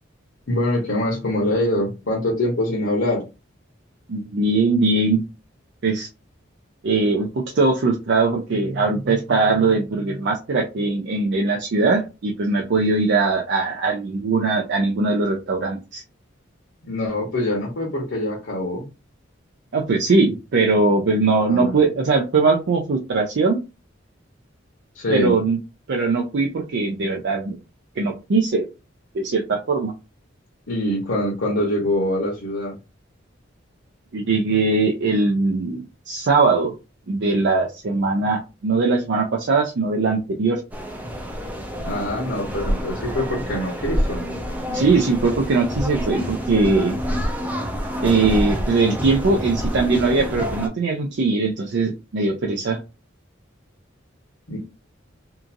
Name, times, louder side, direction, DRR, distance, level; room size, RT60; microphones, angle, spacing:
voice 1, 0.5-3.2 16.8-18.9 21.5-21.8 24.9-25.3 30.7-32.8 41.8-44.2 54.5-54.6, left 1 dB, 60° left, -2 dB, 0.9 m, -24 dB
voice 2, 4.1-5.2 5.8-6.1 6.8-16.0 19.7-23.6 25.1-25.6 25.9-27.6 28.0-28.7 29.1-29.9 34.1-36.7 37.1-40.6 44.7-47.0 48.0-52.8, right 3 dB, 60° right, 0 dB, 0.5 m, -20 dB
sound 1, 40.7-50.7, equal, 10° right, 0.5 m, -27 dB
2.8 x 2.5 x 2.4 m, 0.27 s
head